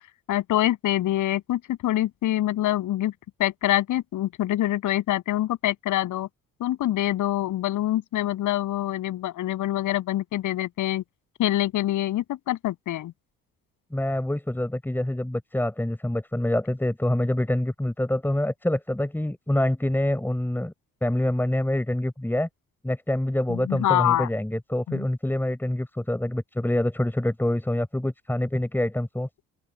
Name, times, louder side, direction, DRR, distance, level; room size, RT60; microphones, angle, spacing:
voice 1, 0.3-3.1 3.4-6.3 6.6-11.0 11.4-13.1 23.5-24.3 24.9-25.0, left 14 dB, 85° left, 7.6 m, -25 dB
voice 2, 13.9-20.7 21.0-22.5 22.8-29.3, left 1 dB, 5° left, 5.3 m, -26 dB
open air
cardioid pair, 90°, 30 cm